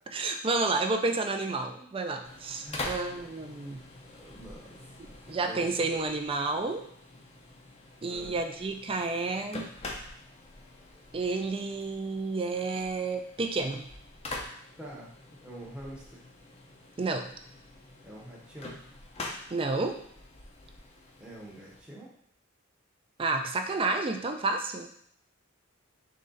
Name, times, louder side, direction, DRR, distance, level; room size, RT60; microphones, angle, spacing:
voice 1, 0.1-3.8 5.3-6.8 8.0-9.7 11.1-13.8 17.0-17.3 19.5-20.0 23.2-24.9, right 3 dB, 25° right, 6 dB, 0.4 m, -30 dB
sound 1, 2.2-21.8, left 2 dB, 30° left, 0.6 m, -45 dB
voice 2, 2.6-2.9 4.1-4.8 5.5-5.8 8.0-8.4 14.8-16.2 18.0-18.8 21.2-22.1, right 1 dB, 5° right, -5 dB, 0.8 m, -45 dB
3.8 x 3.2 x 3.9 m, 0.66 s
head